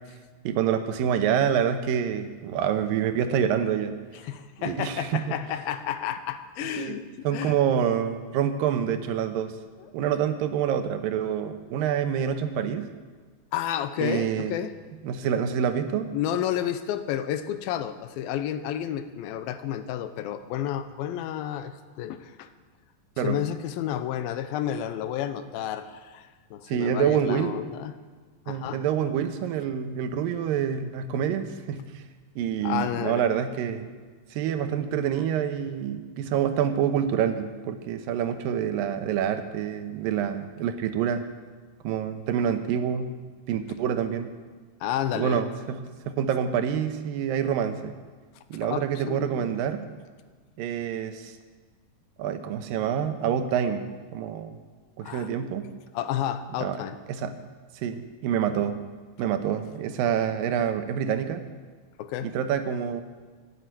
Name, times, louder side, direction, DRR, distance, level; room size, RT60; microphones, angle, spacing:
voice 1, 0.4-3.9 4.6-5.4 6.6-9.5 9.9-12.9 14.0-14.6 15.0-16.1 23.2-23.4 26.7-27.5 28.5-32.0 32.4-33.9 34.3-41.2 41.8-43.1 43.5-44.3 45.1-45.8 46.1-47.9 48.5-49.9 50.6-51.4 52.2-53.9 54.1-54.6 55.0-55.7 56.6-56.8 57.1-57.3 57.7-58.8 59.2-61.4 62.2-63.0, right 8 dB, 75° right, 8 dB, 2.6 m, -27 dB
voice 2, 4.1-7.6 9.8-9.9 13.5-14.7 16.1-22.5 23.2-27.9 28.5-28.8 32.6-33.3 44.8-45.5 48.6-49.5 55.0-55.3 55.9-57.0 62.0-62.3, left 10 dB, 90° left, 11 dB, 2.5 m, -31 dB
12.5 x 10.0 x 9.0 m, 1.4 s
omnidirectional pair, 4.2 m